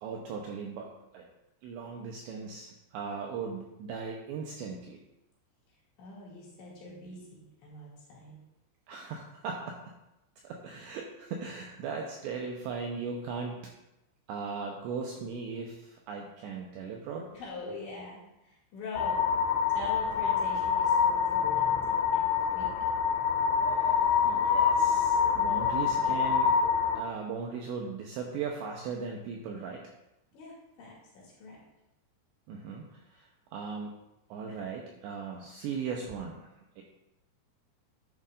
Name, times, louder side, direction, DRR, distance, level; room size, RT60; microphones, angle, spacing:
voice 1, 0.0-1.3 1.6-5.0 8.9-9.8 10.5-13.6 14.3-17.3 23.6-26.5 27.0-29.8 32.5-34.0 34.3-36.5 36.8-36.9, right 5 dB, 90° right, 0 dB, 2.5 m, -38 dB
voice 2, 6.0-8.4 17.3-19.2 19.7-22.9 30.3-31.6, left 2 dB, 60° left, -5 dB, 4.2 m, -44 dB
sound 1, 19.0-27.0, left 7 dB, 80° left, 3.0 m, -26 dB
11.0 x 9.2 x 2.5 m, 0.93 s
omnidirectional pair, 6.0 m